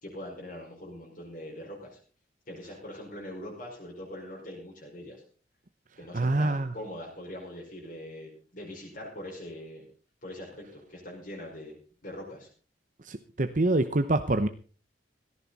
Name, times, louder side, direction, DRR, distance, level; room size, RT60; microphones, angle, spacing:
voice 1, 0.0-2.0 2.5-5.2 6.0-9.9 10.2-11.7 12.0-12.5, left 1 dB, 45° left, -3 dB, 5.2 m, -42 dB
voice 2, 6.1-6.7 13.1-14.5, right 2 dB, 45° right, 9 dB, 0.8 m, -25 dB
17.0 x 14.5 x 4.2 m, 0.39 s
head